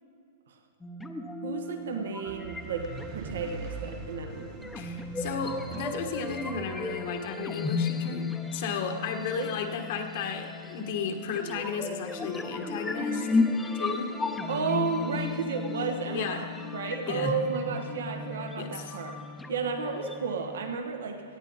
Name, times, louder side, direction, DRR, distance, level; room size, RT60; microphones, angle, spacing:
sound 1, 0.8-20.8, left 4 dB, 5° left, 0.7 m, -34 dB
voice 1, 1.4-2.9 3.1-4.7 9.4-9.5 14.5-16.5 16.7-19.2 19.5-21.2, right 5 dB, 85° right, 5 dB, 1.2 m, -32 dB
sound 2, 2.3-6.8, right 4 dB, 40° right, 1.1 m, -42 dB
voice 2, 4.7-8.2 8.5-13.3 13.7-14.1 16.0-16.4 17.1-17.3 18.6-19.0, left 6 dB, 60° left, 4 dB, 1.5 m, -34 dB
17.5 x 10.5 x 4.1 m, 2.5 s
hypercardioid pair, 150°, 0 cm